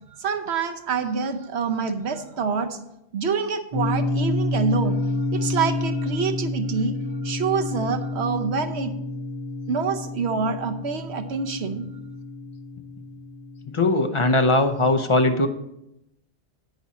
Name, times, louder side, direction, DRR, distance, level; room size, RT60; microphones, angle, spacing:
voice 1, 0.1-2.8 3.1-7.0 7.2-8.9 9.7-11.9, right 5 dB, 75° right, 7 dB, 1.1 m, -26 dB
sound 1, 3.7-13.9, left 1 dB, 30° right, 1.0 m, -29 dB
voice 2, 13.7-15.5, left 2 dB, 30° left, 7 dB, 0.7 m, -20 dB
10.5 x 8.6 x 4.2 m, 0.84 s
omnidirectional pair, 1.1 m